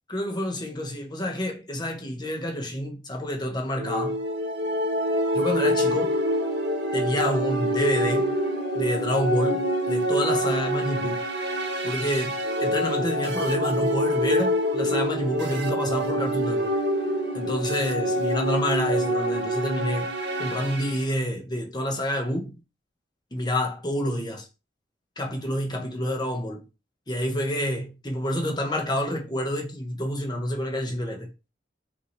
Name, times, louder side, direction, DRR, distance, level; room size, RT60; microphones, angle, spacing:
voice 1, 0.1-4.2 5.3-6.2 6.9-8.3 8.7-11.2 11.8-16.7 17.3-20.1 20.4-22.5 23.3-24.5 25.2-26.6 27.1-31.3, equal, 25° left, 1.4 m, -28 dB
sound 1, 3.8-21.0, equal, 75° right, 1.8 m, -26 dB
5.8 x 4.8 x 3.4 m
head